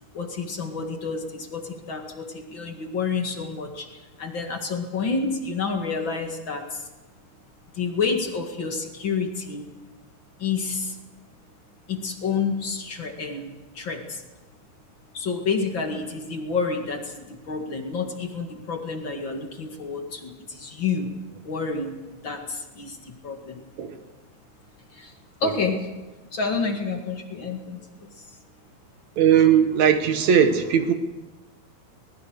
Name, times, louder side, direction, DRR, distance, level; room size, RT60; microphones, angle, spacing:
voice 1, 0.1-3.9 4.2-6.8 7.7-9.7 10.4-11.0 11.9-14.2 15.1-21.1 21.4-22.0 22.2-23.6 24.9-25.1 25.4-25.9 26.3-28.1, left 4 dB, 40° left, 3 dB, 1.9 m, -29 dB
voice 2, 29.2-30.9, right 8 dB, 60° right, 8 dB, 2.0 m, -19 dB
22.5 x 20.5 x 6.5 m, 1.2 s
omnidirectional pair, 4.7 m